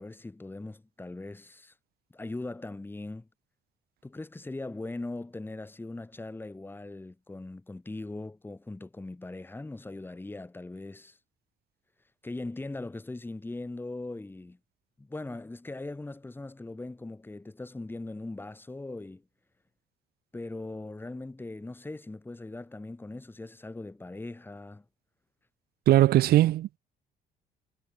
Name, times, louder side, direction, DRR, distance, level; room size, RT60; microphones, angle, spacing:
voice 1, 0.0-1.7 2.1-3.3 4.0-11.2 12.2-14.6 15.0-19.2 20.3-24.8, left 2 dB, 10° left, 4.2 m, -40 dB
voice 2, 25.9-26.8, right 14 dB, 65° right, 1.1 m, -20 dB
cardioid pair, 110°, 17 cm